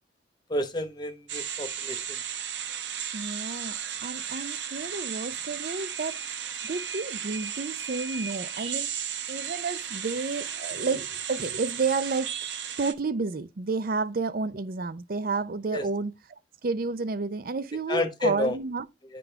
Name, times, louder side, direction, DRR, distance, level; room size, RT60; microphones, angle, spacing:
voice 1, 0.5-2.0 15.7-15.8 17.9-18.6, left 1 dB, 25° left, 1.0 m, -29 dB
sound 1, 1.3-12.9, right 8 dB, 70° right, 0.9 m, -35 dB
voice 2, 3.1-6.2 6.6-8.9 9.3-12.3 12.8-16.1 16.6-18.9, right 4 dB, 50° right, 0.5 m, -31 dB
10.5 x 3.8 x 3.4 m
head